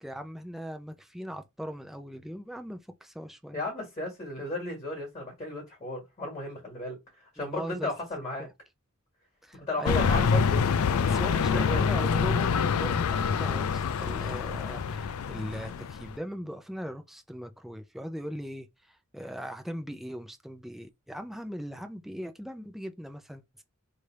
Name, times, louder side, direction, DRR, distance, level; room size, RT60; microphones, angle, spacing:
voice 1, 0.0-3.6 7.4-7.9 9.4-10.3 11.0-23.6, equal, ahead, 0.5 m, -39 dB
voice 2, 3.5-8.5 9.5-10.6 11.0-11.9, left 2 dB, 30° left, 1.8 m, -35 dB
sound 1, 9.9-16.2, left 6 dB, 75° left, 0.4 m, -26 dB
3.3 x 2.7 x 4.6 m
head